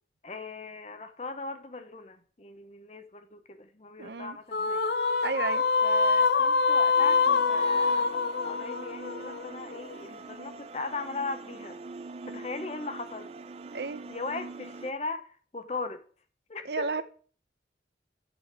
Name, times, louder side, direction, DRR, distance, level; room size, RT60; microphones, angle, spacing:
voice 1, 0.2-4.9 5.8-11.8 12.3-13.3 14.1-16.0 16.5-17.0, left 3 dB, 35° left, 0.7 m, -38 dB
voice 2, 4.0-4.4 5.2-5.6 13.7-14.0 16.6-17.0, right 4 dB, 75° right, 0.7 m, -32 dB
sound 1, 4.5-9.9, left 4 dB, 65° left, 0.5 m, -25 dB
sound 2, 6.9-14.9, right 3 dB, 35° right, 0.4 m, -43 dB
7.6 x 7.0 x 4.6 m
head